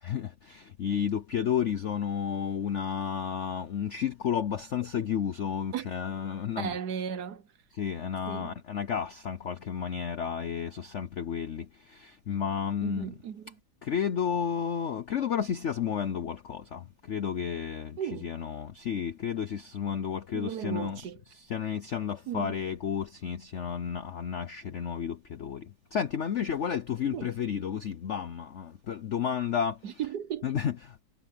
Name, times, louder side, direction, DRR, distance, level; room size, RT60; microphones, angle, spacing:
voice 1, 0.0-6.7 7.7-13.1 13.8-21.0 21.3-29.8 30.4-31.0, left 8 dB, 85° left, 0.6 m, -32 dB
voice 2, 6.6-7.5 8.3-8.6 12.8-13.6 18.0-18.3 20.3-21.2 22.3-22.5 27.1-27.3 29.8-30.5, right 8 dB, 60° right, 1.2 m, -36 dB
omnidirectional pair, 2.3 m